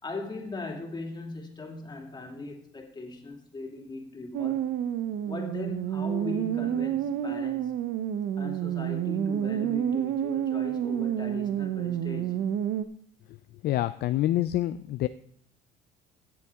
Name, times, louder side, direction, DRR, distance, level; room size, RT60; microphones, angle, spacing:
voice 1, 0.0-4.7 5.2-7.7 8.4-12.4, left 3 dB, 20° left, 2.5 m, -39 dB
sound 1, 4.3-12.8, right 10 dB, 60° right, 0.8 m, -29 dB
voice 2, 13.6-15.1, left 14 dB, 55° left, 0.4 m, -26 dB
16.5 x 7.2 x 3.5 m
cardioid pair, 110°, 20 cm